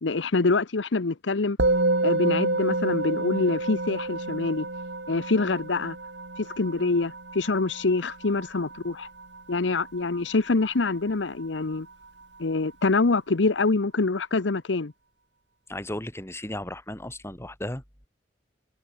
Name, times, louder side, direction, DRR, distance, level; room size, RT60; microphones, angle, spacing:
voice 1, 0.0-1.6 2.0-4.7 5.1-6.0 6.4-9.1 9.5-11.9 12.4-14.9, left 3 dB, 80° left, 0.9 m, -25 dB
Musical instrument, 1.6-11.1, right 2 dB, 70° right, 2.6 m, -29 dB
voice 2, 15.7-17.8, left 1 dB, 15° left, 3.2 m, -35 dB
head